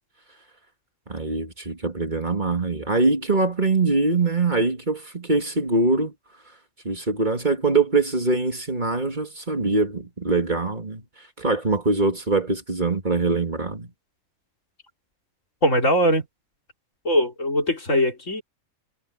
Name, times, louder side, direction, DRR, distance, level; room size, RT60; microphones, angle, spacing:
voice 1, 1.1-6.1 6.8-11.0 11.4-13.9, right 3 dB, 35° right, 2.5 m, -23 dB
voice 2, 15.6-16.3 17.0-18.4, equal, 70° left, 4.6 m, -21 dB
omnidirectional pair, 1.4 m